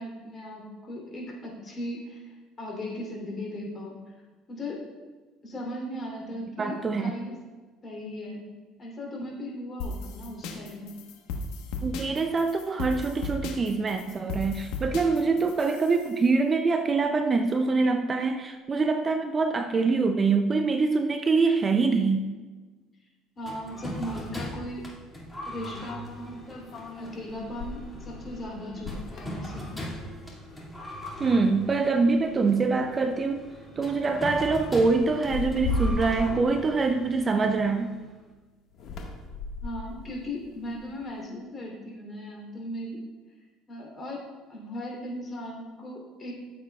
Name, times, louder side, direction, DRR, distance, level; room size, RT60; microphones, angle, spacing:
voice 1, 0.0-4.1 4.5-4.8 5.4-7.4 7.8-8.5 8.8-11.0 23.4-24.9 25.4-26.7 27.0-29.9 39.6-43.0 43.7-46.4, left 1 dB, 30° left, -1 dB, 3.1 m, -37 dB
voice 2, 6.6-7.1 11.8-22.2 31.2-33.5 33.8-37.9, right 4 dB, 25° right, 7 dB, 0.5 m, -24 dB
sound 1, 9.8-16.1, left 2 dB, 80° left, 1.2 m, -36 dB
sound 2, 23.4-38.1, equal, 10° left, 2.3 m, -41 dB
sound 3, 26.7-30.3 30.7-31.0 31.4-32.1 32.9-33.1 33.5-33.8 35.1-37.8 38.7-41.1, left 2 dB, 55° left, 1.6 m, -36 dB
14.5 x 7.6 x 2.4 m, 1.3 s
cardioid pair, 120°, 0 cm